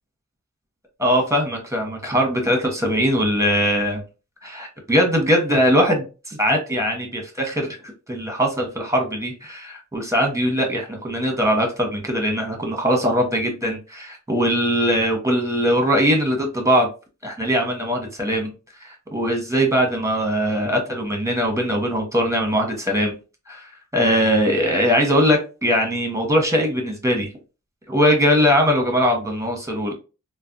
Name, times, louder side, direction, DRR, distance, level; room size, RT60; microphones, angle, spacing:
voice 1, 1.0-4.0 4.4-7.8 8.1-16.9 17.2-18.5 18.8-23.2 23.5-27.3 27.9-29.9, equal, 10° right, 1 dB, 1.1 m, -21 dB
3.2 x 2.2 x 2.6 m, 0.32 s
wide cardioid pair, 55°, 31 cm